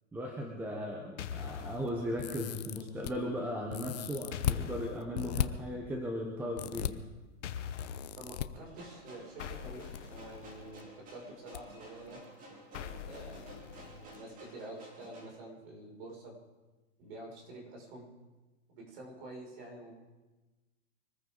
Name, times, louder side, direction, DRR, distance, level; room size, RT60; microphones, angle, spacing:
voice 1, 0.1-7.0, equal, 5° right, 1 dB, 0.9 m, -37 dB
sound 1, 1.2-1.9 4.3-5.0 7.4-8.1 9.4-10.8 12.7-14.2, left 8 dB, 60° left, 1.2 m, -43 dB
sound 2, 2.2-3.1 3.7-4.6 5.1-5.5 6.6-6.9 7.8-8.5 9.6-10.0 10.3-10.4 11.5-11.6 12.0-12.1, left 12 dB, 35° left, 0.5 m, -35 dB
voice 2, 8.2-12.2 12.7-16.3 17.0-18.1 18.7-19.9, right 1 dB, 45° right, -1 dB, 6.2 m, -48 dB
sound 3, 8.6-15.3, right 1 dB, 20° right, 2.9 m, -53 dB
24.5 x 14.5 x 3.9 m, 1.2 s
hypercardioid pair, 155°, 40 cm